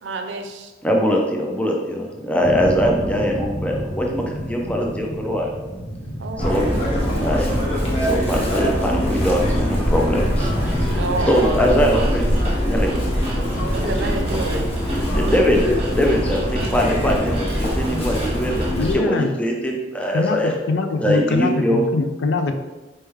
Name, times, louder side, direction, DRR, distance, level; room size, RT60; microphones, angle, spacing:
voice 1, 0.0-0.7 3.0-3.2 6.2-6.8 11.0-11.4 13.7-14.7, right 3 dB, 85° right, 6 dB, 0.5 m, -29 dB
voice 2, 0.8-5.5 6.4-7.6 8.0-10.5 10.8-11.0 11.3-13.1 15.0-15.6 15.9-20.6 21.0-21.8, equal, 5° left, 0 dB, 0.4 m, -22 dB
sound 1, 2.4-11.4, equal, 60° left, 0.9 m, -30 dB
Chirp tweet, 6.4-18.9, equal, 35° left, 0.9 m, -23 dB
sound 2, 10.3-18.8, equal, 35° right, 1.0 m, -33 dB
voice 3, 18.8-19.3 20.1-22.5, left 3 dB, 85° left, 7 dB, 0.4 m, -22 dB
4.3 x 3.3 x 3.4 m, 1.2 s
head